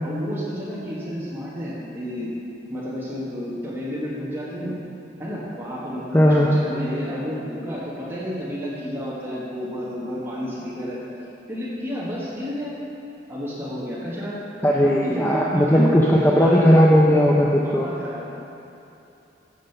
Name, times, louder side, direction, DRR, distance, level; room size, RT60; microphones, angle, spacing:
voice 1, 0.0-2.3 2.7-4.8 5.2-11.0 11.5-12.7 13.3-14.4 14.8-16.8 17.6-18.3, equal, 10° right, -8 dB, 1.4 m, -31 dB
voice 2, 6.1-6.6 14.6-17.9, equal, 10° left, -4 dB, 0.5 m, -17 dB
7.5 x 5.2 x 6.7 m, 2.8 s
head